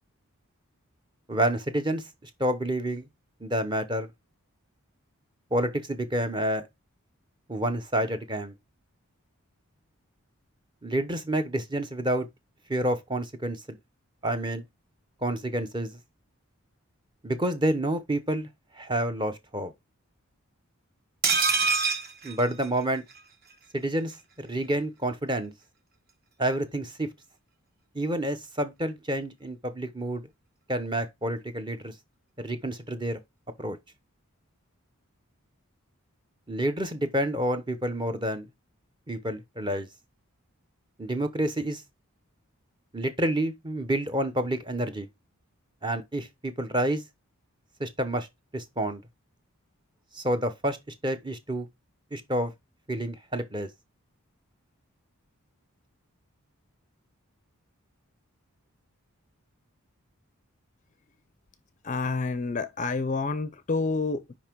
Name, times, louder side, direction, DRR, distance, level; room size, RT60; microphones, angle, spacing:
voice 1, 1.3-3.1 3.4-4.1 5.5-6.6 7.5-8.5 10.8-12.3 12.7-13.8 14.2-14.6 15.2-15.9 17.2-18.5 18.7-19.7 22.2-23.0 23.7-25.5 26.4-27.1 27.9-30.2 30.7-31.9 32.4-33.2 33.6-33.8 36.5-38.5 39.1-39.9 41.0-41.8 42.9-45.1 45.8-47.0 47.8-48.3 48.5-49.0 50.1-50.8 51.0-51.7 52.1-52.5 52.9-53.7, right 1 dB, 20° right, 0.8 m, -29 dB
sound 1, 21.2-23.2 23.5-23.6 23.9-24.0, right 5 dB, 45° right, 1.0 m, -26 dB
voice 2, 61.8-64.3, left 3 dB, 35° left, 0.4 m, -28 dB
5.6 x 5.1 x 4.5 m
head